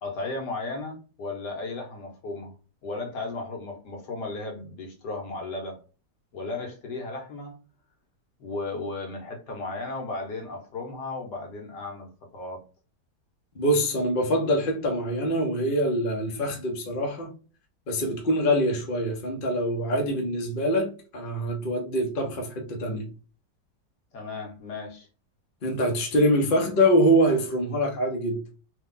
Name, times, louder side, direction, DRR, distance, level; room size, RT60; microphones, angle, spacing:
voice 1, 0.0-2.5 2.8-5.8 6.3-7.6 8.4-12.6 24.1-25.1, left 3 dB, 70° left, 1.5 m, -35 dB
voice 2, 13.5-17.3 17.9-23.1 25.6-28.4, equal, 45° left, 0.7 m, -24 dB
3.3 x 2.3 x 3.7 m
omnidirectional pair, 1.9 m